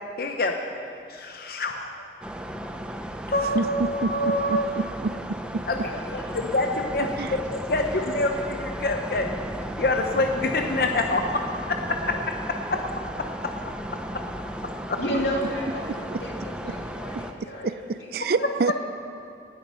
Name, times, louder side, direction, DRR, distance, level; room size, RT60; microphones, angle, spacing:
voice 1, 0.2-0.5 1.1-1.9 3.3-4.7 5.7-5.9 6.3-9.3 9.8-12.3 12.7-12.8 13.4-13.5 14.6-15.0, left 2 dB, 55° left, 4 dB, 0.7 m, -26 dB
sound 1, 2.2-17.3, equal, 5° right, 0.6 m, -35 dB
voice 2, 3.5-5.6 7.2-7.3 16.1-16.2 17.1-17.7 18.1-18.7, right 4 dB, 60° right, 14 dB, 0.4 m, -28 dB
voice 3, 5.9-6.4 15.0-17.7 18.0-18.7, equal, 90° left, -1 dB, 2.5 m, -32 dB
18.5 x 8.6 x 5.6 m, 2.6 s
head